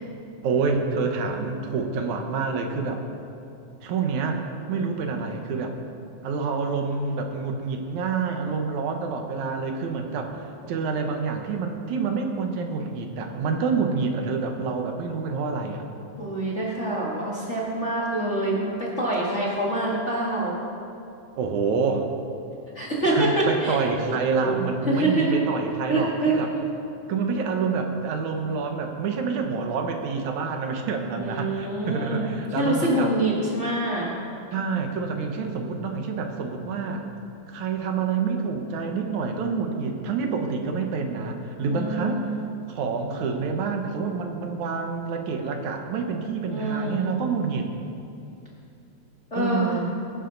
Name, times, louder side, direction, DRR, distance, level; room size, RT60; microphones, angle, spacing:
voice 1, 0.4-3.0 3.8-4.4 4.7-5.8 6.2-15.8 21.4-22.1 23.1-26.5 27.1-33.1 34.5-37.0 37.5-42.3 42.7-47.7 49.4-49.9, right 5 dB, 75° right, 4 dB, 2.4 m, -27 dB
voice 2, 16.2-20.6 22.7-23.8 24.1-24.5 24.8-25.4 25.9-26.7 31.1-34.1 41.7-42.4 46.5-47.2 49.3-49.8, right 1 dB, 30° left, -5 dB, 1.5 m, -26 dB
20.5 x 11.5 x 3.9 m, 2.6 s
omnidirectional pair, 3.5 m